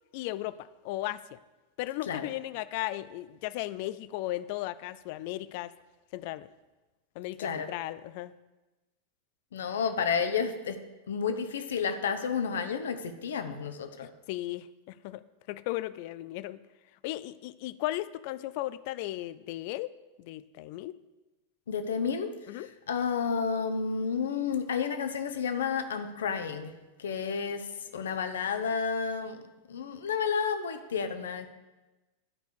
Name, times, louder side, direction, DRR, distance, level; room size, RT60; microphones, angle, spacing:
voice 1, 0.1-1.4 1.8-5.7 6.1-6.5 7.2-8.3 14.3-15.2 15.5-16.6 17.0-21.0 22.5-22.7, left 16 dB, 45° left, 16 dB, 0.4 m, -36 dB
voice 2, 9.5-10.8 11.1-14.1 21.7-26.7 27.0-27.6 27.9-29.4 29.7-31.5, left 6 dB, 65° left, 8 dB, 0.9 m, -31 dB
11.0 x 5.2 x 6.5 m, 1.1 s
figure-of-eight pair, 90°, 0 cm